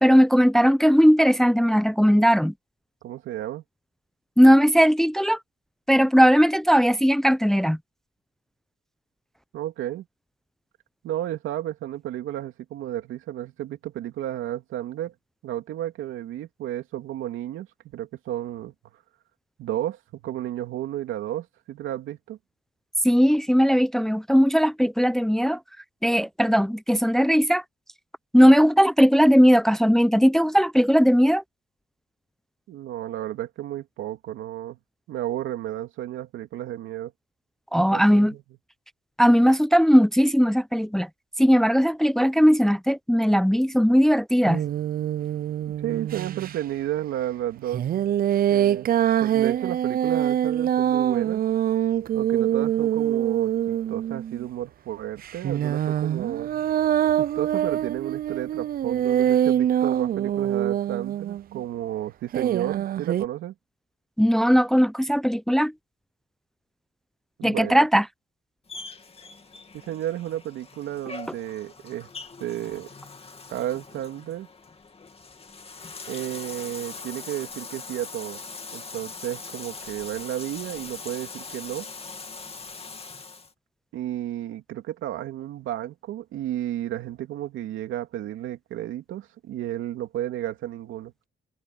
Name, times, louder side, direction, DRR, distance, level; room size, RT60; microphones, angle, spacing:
voice 1, 0.0-2.5 4.4-5.4 5.9-7.8 23.0-25.6 26.0-27.6 28.3-31.4 37.7-38.3 39.2-41.1 41.4-44.6 64.2-65.7 67.4-68.0, equal, ahead, 0.7 m, -18 dB
voice 2, 3.0-3.6 9.5-10.0 11.0-15.1 15.4-17.7 17.9-18.7 19.6-22.4 32.7-34.8 35.1-37.1 37.9-38.4 45.8-47.8 48.5-48.9 49.2-51.4 52.1-56.5 57.2-63.5 67.4-67.8 69.7-72.1 72.4-72.9 73.5-74.5 76.1-78.4 78.7-81.9 83.9-91.1, right 12 dB, 85° right, 3.1 m, -32 dB
sound 1, 44.4-46.5 47.7-54.5 55.2-61.6 62.3-63.3, right 11 dB, 50° right, 0.4 m, -24 dB
Bathtub (filling or washing), 68.7-83.5, left 4 dB, 30° left, 2.5 m, -41 dB
cardioid pair, 90°, 20 cm